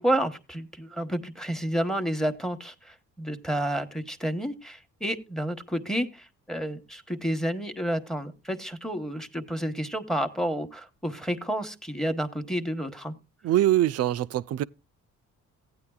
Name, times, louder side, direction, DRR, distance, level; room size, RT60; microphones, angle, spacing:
voice 1, 0.0-13.1, right 1 dB, ahead, 1.0 m, -30 dB
voice 2, 13.4-14.6, right 13 dB, 55° right, 0.4 m, -23 dB
15.5 x 9.4 x 2.3 m
cardioid pair, 90°, 30 cm